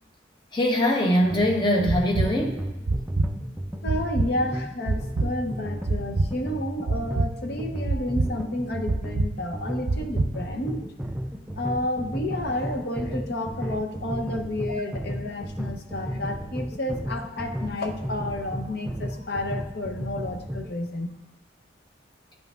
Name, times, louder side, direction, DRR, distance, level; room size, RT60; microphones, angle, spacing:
voice 1, 0.5-2.6, equal, 25° left, 2 dB, 0.8 m, -22 dB
sound 1, 1.2-20.8, equal, 5° right, 0.4 m, -34 dB
sound 2, 1.9-2.3 2.9-3.3 3.9-4.3 4.9-5.3 5.9-6.3 6.9-7.3 7.9-8.3 8.9-9.3 9.9-10.3, right 2 dB, 60° right, 0.5 m, -24 dB
voice 2, 3.8-10.8 11.6-21.2, left 1 dB, 55° left, 3 dB, 0.7 m, -31 dB
10.0 x 5.7 x 2.4 m, 0.98 s
head